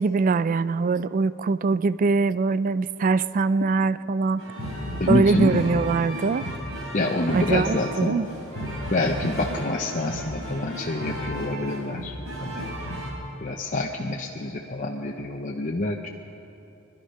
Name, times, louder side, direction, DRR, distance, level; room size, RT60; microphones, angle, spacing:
voice 1, 0.0-4.4 5.1-6.5 7.3-8.3, right 4 dB, 40° right, 16 dB, 0.3 m, -22 dB
sound 1, 4.4-13.1, equal, 80° right, 3.4 m, -33 dB
voice 2, 5.0-5.6 6.9-8.2 8.9-12.1 12.4-12.7 13.4-16.1, left 2 dB, 35° left, 0 dB, 0.7 m, -27 dB
21.0 x 12.0 x 5.5 m, 3.0 s
head